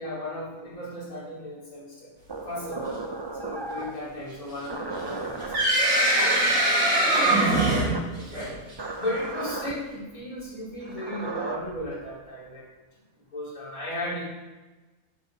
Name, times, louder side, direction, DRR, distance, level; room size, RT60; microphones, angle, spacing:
voice 1, 0.0-2.1 2.5-2.8 3.4-5.7 6.7-8.5 9.0-12.7 13.3-14.2, left 1 dB, 80° left, -8 dB, 3.9 m, -35 dB
sound 1, 2.3-4.0 4.7-5.6 6.2-6.6 7.1-8.0 8.8-9.7 10.8-11.6, right 3 dB, 30° right, 0.4 m, -34 dB
sound 2, 5.1-8.7, right 1 dB, 65° right, 3.0 m, -22 dB
10.5 x 5.4 x 6.5 m, 1.2 s
omnidirectional pair, 1.5 m